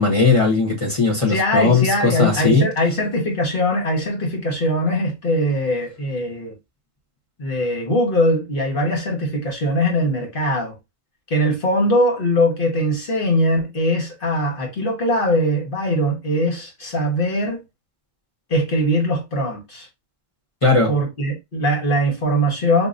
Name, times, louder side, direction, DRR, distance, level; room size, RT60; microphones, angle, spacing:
voice 1, 0.0-2.7 20.6-20.9, left 3 dB, 30° left, 1.2 m, -18 dB
voice 2, 1.3-6.5 7.4-10.7 11.3-17.6 18.5-19.9 20.9-22.9, equal, 60° left, 1.5 m, -21 dB
4.0 x 2.9 x 2.5 m
omnidirectional pair, 1.0 m